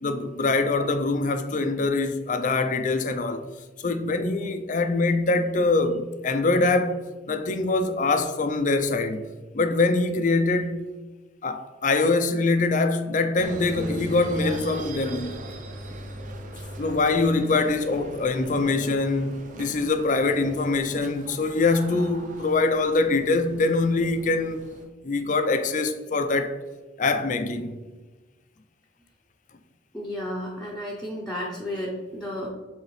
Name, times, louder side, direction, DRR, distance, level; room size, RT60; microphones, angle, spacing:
voice 1, 0.0-3.5 3.8-7.0 7.3-9.2 9.5-10.8 11.4-15.4 16.8-24.6 25.0-26.5 27.0-27.8, left 3 dB, 40° left, 0.5 m, -24 dB
sound 1, 13.4-24.9, right 1 dB, 40° right, 0.6 m, -40 dB
voice 2, 29.9-32.5, left 1 dB, 5° left, 0.7 m, -32 dB
7.4 x 4.1 x 3.2 m
head